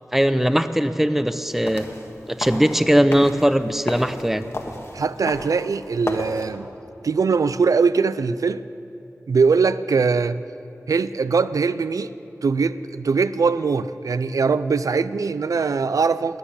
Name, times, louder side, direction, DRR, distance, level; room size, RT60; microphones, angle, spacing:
voice 1, 0.1-1.9 2.3-4.4, equal, 5° right, 11 dB, 0.6 m, -19 dB
sound 1, 1.5-6.5, left 1 dB, 55° left, 1.5 m, -34 dB
voice 2, 4.9-6.7 7.0-8.7 9.3-10.4 10.9-12.1 12.4-16.4, right 5 dB, 85° right, 14 dB, 0.4 m, -21 dB
12.0 x 10.0 x 9.9 m, 2.8 s
wide cardioid pair, 75°, 6 cm